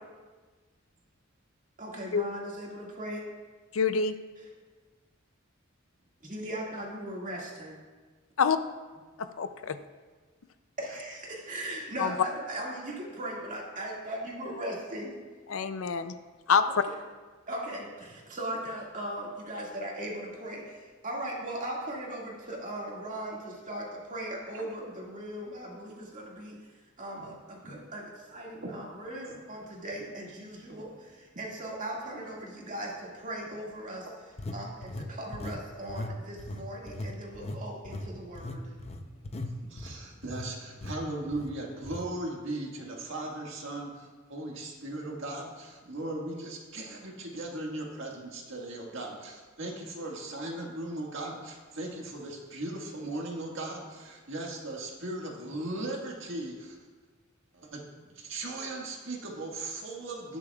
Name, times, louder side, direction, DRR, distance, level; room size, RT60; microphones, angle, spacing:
voice 1, 1.8-3.2 6.2-7.7 10.8-15.1 16.6-16.9 17.5-26.6 27.0-34.1 34.5-38.6, right 1 dB, 40° right, -3 dB, 2.1 m, -38 dB
voice 2, 3.7-4.2 8.4-8.6 9.2-9.8 12.0-12.1 15.5-16.1 16.5-16.7, left 6 dB, 80° left, 11 dB, 0.5 m, -26 dB
sound 1, 29.9-30.0 30.7-30.8 34.4-35.6 35.9-36.1 36.4-40.5 40.8-41.0 41.3-41.5 41.8-42.1, left 1 dB, 30° left, 0.6 m, -38 dB
voice 3, 39.4-56.8 57.5-57.8 58.2-60.4, right 2 dB, 65° right, -1 dB, 1.8 m, -38 dB
18.5 x 6.9 x 2.4 m, 1.4 s
head